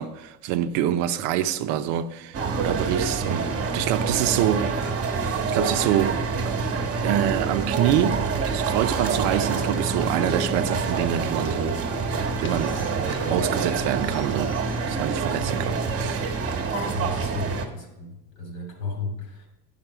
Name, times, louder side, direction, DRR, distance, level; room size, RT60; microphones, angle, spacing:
voice 1, 0.0-3.5 3.7-4.8 5.5-6.2 7.0-11.8 12.4-12.8 13.3-16.2, right 11 dB, 70° right, 0.7 m, -26 dB
sound 1, 2.3-17.7, right 4 dB, 35° right, 1.1 m, -26 dB
sound 2, 9.6-10.6 10.8-15.8, left 4 dB, 30° left, 0.6 m, -43 dB
voice 2, 16.9-19.5, left 4 dB, 75° left, 2.7 m, -35 dB
8.9 x 5.9 x 4.7 m
cardioid pair, 115°, 42 cm